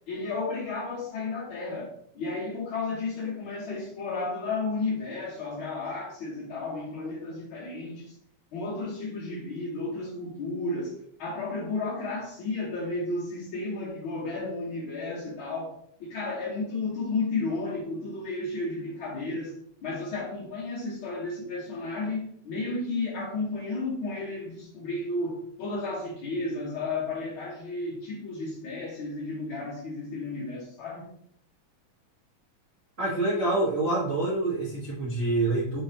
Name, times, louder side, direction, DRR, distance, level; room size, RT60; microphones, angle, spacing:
voice 1, 0.1-8.1 8.5-15.7 16.0-19.6 19.8-31.1, left 3 dB, 65° left, 1.3 m, -33 dB
voice 2, 33.0-35.8, right 2 dB, 75° right, 0.5 m, -26 dB
5.4 x 3.4 x 2.8 m
omnidirectional pair, 3.3 m